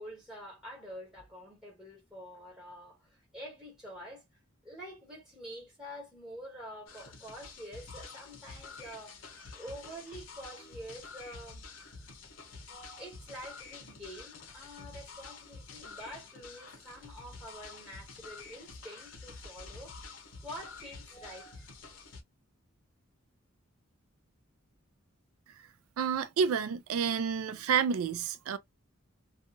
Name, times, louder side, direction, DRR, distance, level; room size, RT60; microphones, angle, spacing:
voice 1, 0.0-4.2 4.6-9.2 9.5-11.6 12.7-19.9 20.4-21.6, equal, 5° right, 1.5 m, -47 dB
sound 1, 6.9-22.2, left 4 dB, 65° left, 0.9 m, -49 dB
voice 2, 26.0-28.6, right 6 dB, 85° right, 0.4 m, -29 dB
2.9 x 2.3 x 2.4 m
head